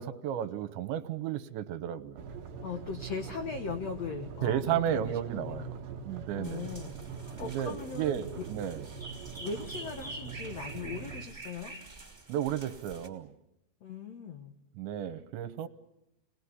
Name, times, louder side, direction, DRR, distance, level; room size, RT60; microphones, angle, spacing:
voice 1, 0.0-2.2 4.4-5.8 6.0-6.7 7.4-8.8 12.3-13.3 14.8-15.7, right 10 dB, 80° right, 12 dB, 3.4 m, -33 dB
sound 1, 2.2-11.2, right 5 dB, 60° right, 3.1 m, -43 dB
voice 2, 2.6-5.7 6.4-8.4 9.4-11.8 13.8-14.6, left 5 dB, 85° left, 7 dB, 1.5 m, -39 dB
sound 2, 6.4-13.1, right 2 dB, 10° right, 2.4 m, -47 dB
29.0 x 20.0 x 9.7 m, 0.84 s
omnidirectional pair, 5.2 m